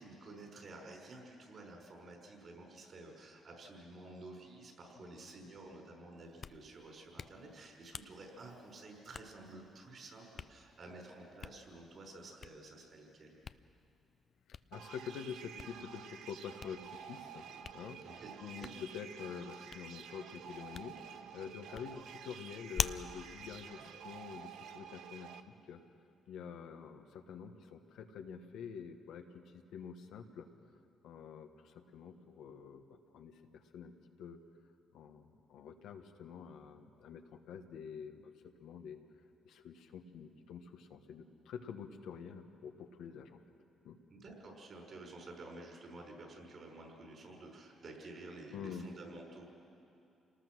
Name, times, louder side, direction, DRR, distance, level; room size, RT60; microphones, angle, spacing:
voice 1, 0.0-13.4 18.0-18.3 18.6-18.7 23.7-23.9 44.1-49.4, right 2 dB, 50° right, 1 dB, 5.6 m, -51 dB
Hands, 6.2-24.7, left 6 dB, 45° left, 0.5 m, -48 dB
voice 2, 14.7-17.5 17.7-18.0 18.4-25.8 26.3-30.5 31.0-33.9 34.2-34.4 34.9-39.0 39.4-43.4 43.8-44.0 48.5-48.9, left 7 dB, 85° left, 5 dB, 1.4 m, -47 dB
sound 1, 14.7-25.4, right 8 dB, 80° right, 0.9 m, -51 dB
28.0 x 19.5 x 6.4 m, 2.6 s
cardioid pair, 90°, 0 cm